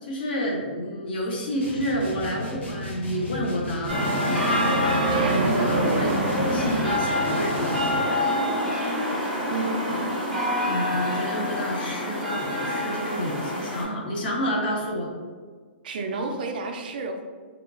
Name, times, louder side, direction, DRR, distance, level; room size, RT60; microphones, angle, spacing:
voice 1, 0.0-4.0 5.2-7.8 9.9-10.1 10.7-15.1, equal, 55° left, -2 dB, 0.5 m, -29 dB
sound 1, 1.6-8.1, equal, 80° left, 0.9 m, -37 dB
sound 2, 3.9-13.8, equal, 5° left, 0.6 m, -25 dB
voice 2, 5.1-5.5 9.5-10.0 15.8-17.2, right 3 dB, 50° right, 4 dB, 0.3 m, -31 dB
2.8 x 2.2 x 2.4 m, 1.5 s
hypercardioid pair, 170°, 6 cm